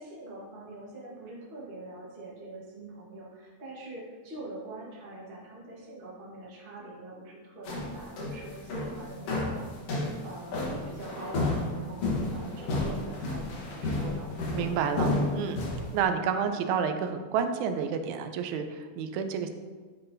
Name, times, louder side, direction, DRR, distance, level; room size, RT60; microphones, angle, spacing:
voice 1, 0.0-9.6 10.0-10.6 10.9-14.3, right 2 dB, 45° right, -5 dB, 0.7 m, -44 dB
sound 1, 7.7-16.0, left 2 dB, 65° left, 2.0 m, -31 dB
voice 2, 14.5-15.7 15.9-19.5, right 7 dB, 90° right, 7 dB, 2.0 m, -30 dB
9.9 x 3.8 x 2.6 m, 1.5 s
omnidirectional pair, 3.3 m